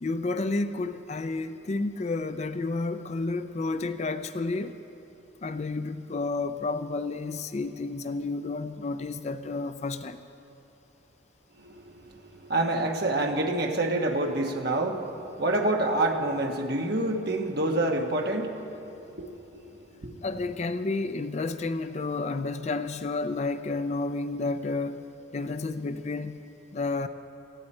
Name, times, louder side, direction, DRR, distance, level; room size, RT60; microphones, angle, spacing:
voice 1, 0.0-4.8 5.4-10.2 20.2-25.1 25.3-26.4 26.7-27.1, left 3 dB, 35° left, 10 dB, 0.4 m, -31 dB
voice 2, 11.6-20.2, right 2 dB, 50° right, 3 dB, 1.2 m, -28 dB
18.5 x 14.5 x 4.3 m, 2.9 s
head